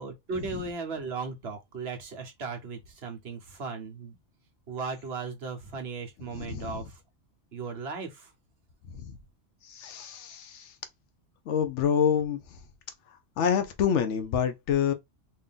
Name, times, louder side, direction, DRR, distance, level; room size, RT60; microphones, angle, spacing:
voice 1, 0.0-4.2 4.7-7.0 7.5-8.3, right 4 dB, 60° right, 1.2 m, -36 dB
voice 2, 6.3-6.8 8.9-9.2 9.7-10.6 11.5-12.4 13.4-14.9, left 8 dB, 75° left, 0.9 m, -27 dB
3.2 x 2.7 x 3.6 m
omnidirectional pair, 1.3 m